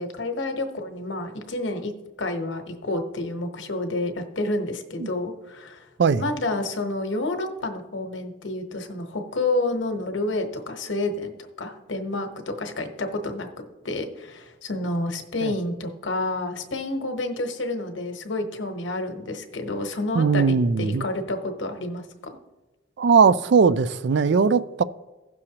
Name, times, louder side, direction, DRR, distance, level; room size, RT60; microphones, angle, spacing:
voice 1, 0.0-1.9 2.2-5.9 6.2-11.3 11.6-13.5 13.8-22.4, left 2 dB, 80° left, 1.1 m, -29 dB
voice 2, 20.1-21.0 23.0-24.8, right 5 dB, 65° right, 0.4 m, -19 dB
16.0 x 6.3 x 2.9 m
head